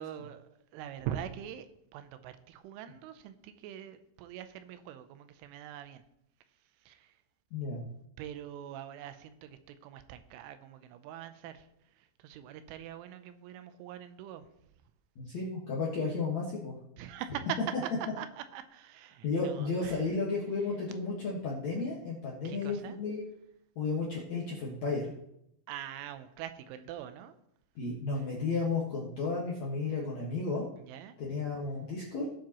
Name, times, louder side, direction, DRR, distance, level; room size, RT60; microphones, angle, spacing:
voice 1, 0.0-1.7 1.9-6.0 6.8-7.2 8.2-11.7 12.0-14.5 17.0-17.6 18.2-20.1 22.4-23.0 25.7-27.3 30.8-31.1, right 10 dB, 85° right, 10 dB, 3.2 m, -43 dB
voice 2, 7.5-7.8 15.2-16.7 19.2-23.2 23.8-25.1 27.8-30.7 31.2-32.3, left 4 dB, 60° left, -5 dB, 1.9 m, -33 dB
19.0 x 7.4 x 3.0 m, 0.78 s
omnidirectional pair, 5.6 m